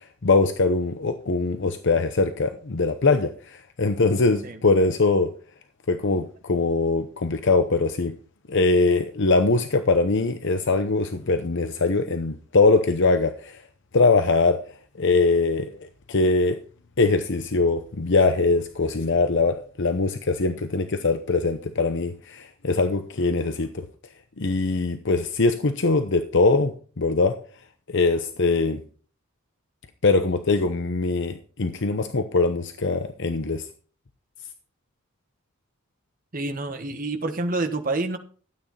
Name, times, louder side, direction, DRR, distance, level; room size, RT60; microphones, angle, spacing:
voice 1, 0.2-5.3 5.9-8.1 8.5-13.6 13.9-14.6 15.0-16.6 17.0-23.9 24.4-27.3 27.9-28.8 30.0-33.7, left 3 dB, 60° left, 8 dB, 0.8 m, -22 dB
voice 2, 36.3-38.2, right 2 dB, 40° right, 6 dB, 1.4 m, -28 dB
13.0 x 8.9 x 4.3 m, 0.42 s
head